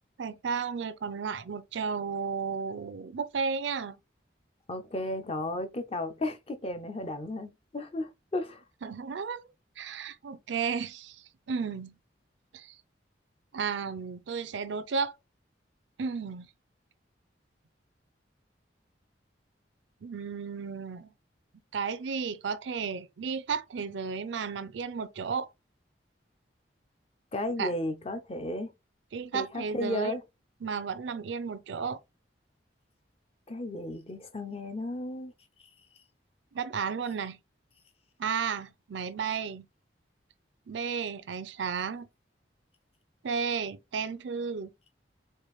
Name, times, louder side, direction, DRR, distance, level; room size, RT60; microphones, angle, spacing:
voice 1, 0.2-4.0 8.8-9.4 9.8-11.9 12.5-12.8 13.5-15.1 16.0-16.5 20.0-21.1 21.7-25.5 27.6-27.7 29.1-30.2 30.6-32.0 36.5-37.4 38.2-39.7 40.7-42.1 43.2-44.7, right 6 dB, 75° right, 0.5 m, -33 dB
voice 2, 4.7-8.6 27.3-28.7 29.3-30.2 33.5-35.3, left 1 dB, 30° left, 0.6 m, -34 dB
4.5 x 2.5 x 3.1 m
head